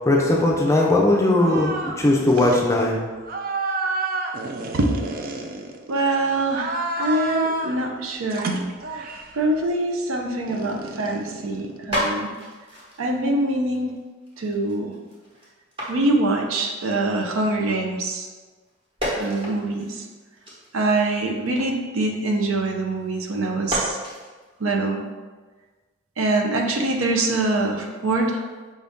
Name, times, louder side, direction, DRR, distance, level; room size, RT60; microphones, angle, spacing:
voice 1, 0.1-3.0, left 2 dB, 15° left, -2 dB, 0.5 m, -19 dB
sound 1, 1.4-2.0 2.3-2.6 3.2-6.0 6.4-7.8 8.3-9.4 10.5-12.3, right 3 dB, 45° right, 0.3 m, -30 dB
voice 2, 5.9-8.6 8.9-12.3 13.0-13.9 14.4-14.9 15.9-18.3 19.1-20.1 20.7-24.0 24.6-25.0 26.2-28.4, right 2 dB, 85° right, 2 dB, 0.6 m, -24 dB
sound 2, 11.4-11.5 11.7-17.0 17.3-18.4 18.7-23.1 23.5-24.6, equal, 25° right, 1.0 m, -33 dB
5.0 x 2.7 x 3.5 m, 1.4 s
head